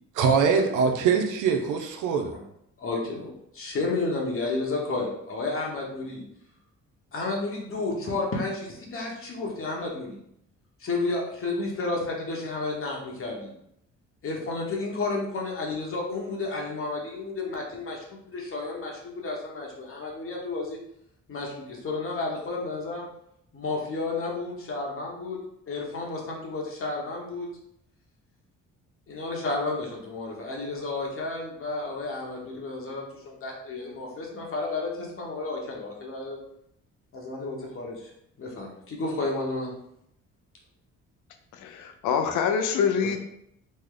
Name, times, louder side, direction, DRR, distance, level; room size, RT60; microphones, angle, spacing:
voice 1, 0.1-2.3, right 6 dB, 90° right, 4 dB, 0.5 m, -23 dB
voice 2, 2.8-6.2 7.1-10.2 10.8-13.5 14.2-20.8 21.3-23.1 23.5-25.4 25.7-27.5 29.1-36.4 37.2-38.1 38.4-39.7, left 3 dB, 45° left, -2 dB, 0.9 m, -32 dB
voice 3, 41.6-43.2, left 7 dB, 80° left, 6 dB, 0.5 m, -25 dB
3.2 x 2.0 x 3.7 m, 0.75 s
cardioid pair, 90°, 30 cm